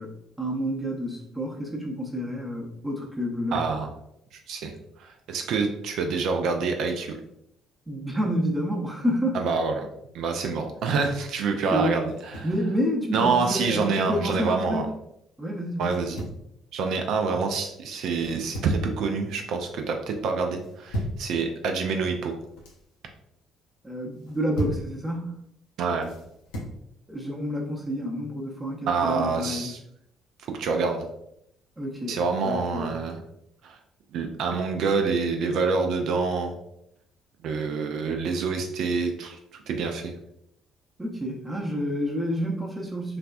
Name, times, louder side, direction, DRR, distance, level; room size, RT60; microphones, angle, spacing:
voice 1, 0.0-3.6 7.9-9.4 11.7-12.1 12.4-14.8 15.4-16.0 23.8-25.4 27.1-29.7 31.8-32.9 41.0-43.2, equal, 15° right, -2 dB, 0.6 m, -29 dB
voice 2, 3.5-3.9 4.5-4.7 5.0-7.2 9.3-9.9 10.1-12.5 13.1-14.8 15.8-16.2 16.7-22.3 25.8-26.1 28.9-29.8 30.5-31.1 32.1-33.2 33.6-33.8 34.1-36.5 37.4-39.4 39.7-40.1, right 4 dB, 60° right, 4 dB, 0.3 m, -26 dB
sound 1, 12.1-12.6 13.9-14.6 15.8-16.4 18.1-18.9 19.3-19.7 20.6-21.3 22.3-22.8 24.1-24.9 26.0-26.8, equal, 75° left, 0.5 m, -36 dB
3.3 x 2.2 x 2.4 m, 0.77 s
figure-of-eight pair, 50°, 0 cm